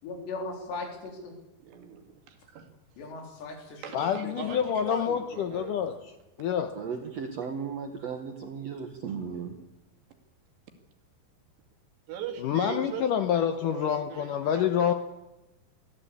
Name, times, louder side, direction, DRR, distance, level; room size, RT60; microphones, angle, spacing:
voice 1, 0.0-1.3 3.0-4.6 5.0-5.1 5.4-5.6, left 3 dB, 90° left, 2 dB, 6.0 m, -39 dB
voice 2, 1.6-2.7 3.8-5.8 12.1-15.0, right 8 dB, 85° right, 5 dB, 4.4 m, -41 dB
voice 3, 3.9-5.9 6.4-6.7 12.4-14.9, left 8 dB, 75° left, 8 dB, 2.0 m, -27 dB
voice 4, 6.7-9.6, right 6 dB, 65° right, 5 dB, 1.7 m, -35 dB
23.0 x 15.5 x 8.5 m, 0.98 s
omnidirectional pair, 4.8 m